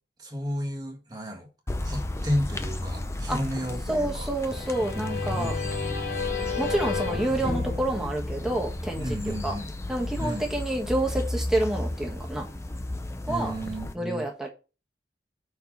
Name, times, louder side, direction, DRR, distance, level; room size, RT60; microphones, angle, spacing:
voice 1, 0.2-1.5 1.8-4.3 5.3-5.5 9.0-9.7 10.2-10.4 13.3-14.3, equal, 20° right, 1.6 m, -32 dB
sound 1, 1.7-13.9, left 1 dB, 15° left, 0.5 m, -34 dB
voice 2, 3.9-5.5 6.6-9.5 9.9-12.5 13.3-13.5 13.9-14.5, right 1 dB, 5° right, 1.5 m, -28 dB
sound 2, 4.4-9.1, left 4 dB, 90° left, 3.7 m, -32 dB
5.5 x 4.6 x 6.1 m
head